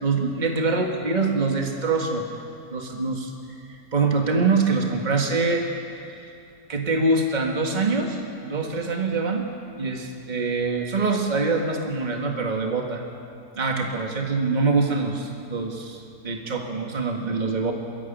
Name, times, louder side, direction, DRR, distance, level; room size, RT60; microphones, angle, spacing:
voice 1, 0.0-2.3 2.7-3.3 3.9-5.7 6.1-6.3 6.7-9.5 9.8-13.0 13.6-17.7, right 3 dB, 30° right, 2 dB, 1.9 m, -24 dB
22.5 x 13.5 x 9.2 m, 2.5 s
omnidirectional pair, 1.7 m